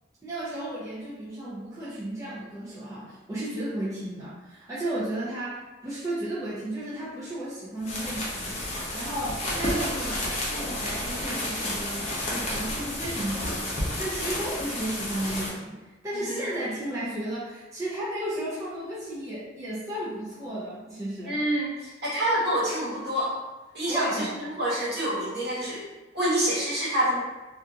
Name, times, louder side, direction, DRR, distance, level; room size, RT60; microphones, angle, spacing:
voice 1, 0.2-21.4 23.9-24.3, right 1 dB, 15° right, -10 dB, 0.6 m, -34 dB
sound 1, 7.8-15.5, left 1 dB, 35° left, 0.6 m, -31 dB
voice 2, 21.2-23.4 23.7-25.9 26.1-27.2, right 1 dB, 55° right, -9 dB, 1.2 m, -27 dB
2.7 x 2.5 x 2.3 m, 1.1 s
head